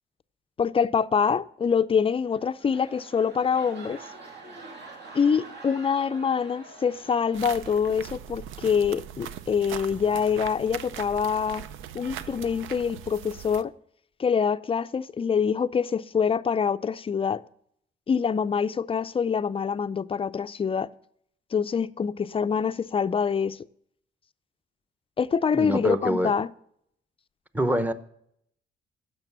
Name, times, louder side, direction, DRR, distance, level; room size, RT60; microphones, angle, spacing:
voice 1, 0.6-4.0 5.1-11.6 11.9-13.7 14.2-17.4 18.1-20.9 21.5-23.6 25.2-26.5, left 6 dB, 30° left, 0.4 m, -25 dB
sound 1, 2.2-8.2 8.5-8.8, right 3 dB, 60° right, 2.4 m, -46 dB
sound 2, 7.3-13.6, right 10 dB, 85° right, 0.6 m, -40 dB
voice 2, 25.5-26.3 27.5-27.9, equal, 10° right, 0.8 m, -25 dB
10.5 x 6.7 x 6.7 m
cardioid pair, 90°, 20 cm